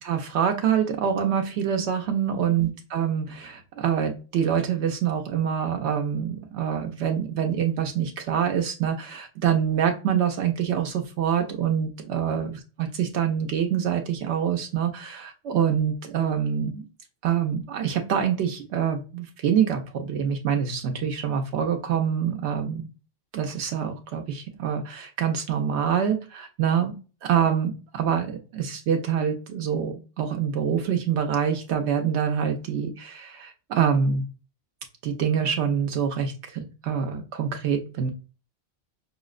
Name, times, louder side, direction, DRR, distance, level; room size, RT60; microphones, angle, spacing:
voice 1, 0.0-12.5 12.8-16.8 17.2-22.9 23.3-26.9 27.2-34.2 35.0-38.1, right 8 dB, 80° right, 4 dB, 0.8 m, -25 dB
5.5 x 2.0 x 2.3 m, 0.34 s
omnidirectional pair, 1.1 m